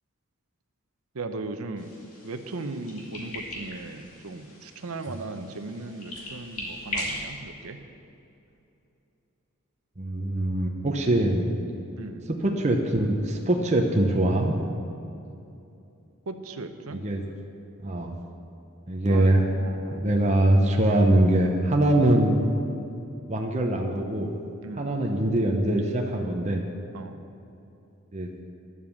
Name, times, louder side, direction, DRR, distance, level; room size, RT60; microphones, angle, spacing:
voice 1, 1.1-1.9 2.2-7.8 12.0-12.3 16.3-17.0 19.1-19.3 19.6-20.1 24.6-25.0 26.9-27.2, right 3 dB, 75° right, 8 dB, 0.8 m, -37 dB
sound 1, 1.8-7.2, left 1 dB, 80° left, 2.5 m, -39 dB
voice 2, 10.0-11.5 12.3-14.6 16.9-17.2 17.8-18.1 18.9-19.4 19.9-22.4 23.3-24.3 24.8-26.6 28.1-28.3, right 1 dB, 30° right, 1 dB, 0.8 m, -23 dB
11.0 x 7.5 x 7.1 m, 2.7 s
head